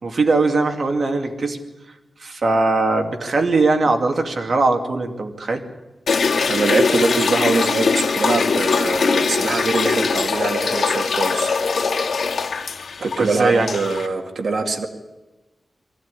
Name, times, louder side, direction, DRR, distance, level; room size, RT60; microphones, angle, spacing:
voice 1, 0.0-1.6 2.2-5.6 13.0-13.8, right 3 dB, 50° right, 4 dB, 2.6 m, -20 dB
sound 1, 6.1-14.1, left 5 dB, 90° left, 2.1 m, -21 dB
voice 2, 6.5-11.9 13.0-14.9, right 3 dB, 65° right, 3 dB, 2.2 m, -23 dB
23.0 x 15.0 x 9.9 m, 1.1 s
wide cardioid pair, 135°, 0 cm